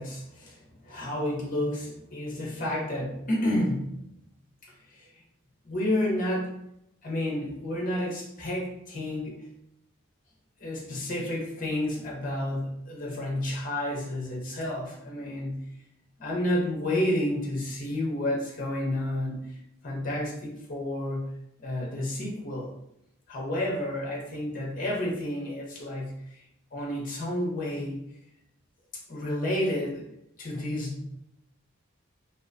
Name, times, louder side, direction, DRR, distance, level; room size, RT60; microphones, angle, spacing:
voice 1, 0.0-3.9 4.6-5.1 5.6-6.6 7.0-9.4 10.6-15.6 16.2-19.4 19.8-21.3 21.6-22.7 23.3-26.4 26.7-28.0 29.1-30.0 30.4-31.1, left 1 dB, 40° left, -3 dB, 0.7 m, -30 dB
2.4 x 2.1 x 2.4 m, 0.79 s
head